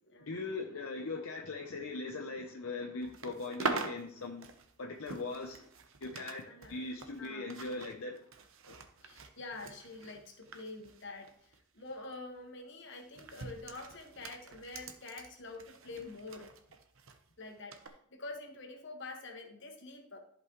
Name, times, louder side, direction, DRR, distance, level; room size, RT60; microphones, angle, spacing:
voice 1, 0.2-4.5 4.8-5.7 6.0-8.3 8.7-8.8, left 3 dB, 70° left, 2 dB, 0.7 m, -40 dB
sound 1, 3.0-6.4 6.6-11.6 11.9-12.1 12.9-17.2 17.7-17.9, right 4 dB, 65° right, 0.9 m, -44 dB
voice 2, 6.4-6.8 7.2-7.5 8.6-16.5 17.4-20.2, left 3 dB, 55° left, 3 dB, 1.5 m, -47 dB
14.0 x 5.3 x 3.1 m, 0.65 s
head